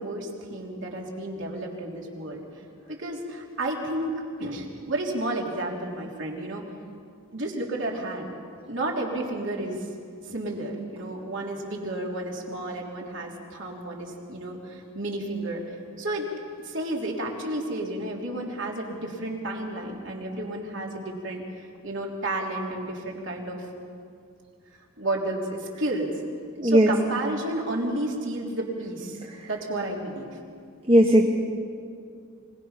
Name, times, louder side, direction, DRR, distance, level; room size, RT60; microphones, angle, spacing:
voice 1, 0.0-2.4 2.9-6.6 7.3-8.3 8.7-9.9 10.2-16.3 16.6-23.7 24.7-26.1 26.6-29.2 29.5-30.4, right 1 dB, 60° right, -1 dB, 3.2 m, -32 dB
voice 2, 30.9-31.2, right 1 dB, 25° right, -1 dB, 1.3 m, -16 dB
25.0 x 19.0 x 5.7 m, 2.3 s
head